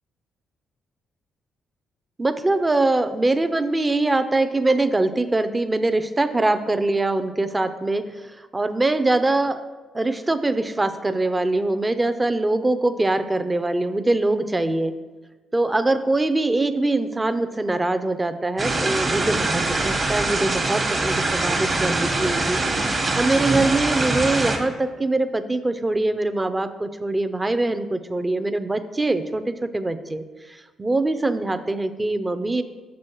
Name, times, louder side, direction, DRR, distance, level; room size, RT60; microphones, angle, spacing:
voice 1, 2.2-8.2 8.5-9.6 9.9-14.9 15.5-30.2 30.5-32.6, right 2 dB, 20° right, 10 dB, 0.5 m, -23 dB
sound 1, 18.6-24.6, right 2 dB, 35° right, 1.2 m, -23 dB
6.2 x 6.2 x 4.5 m, 1.3 s
cardioid pair, 90°, 0 cm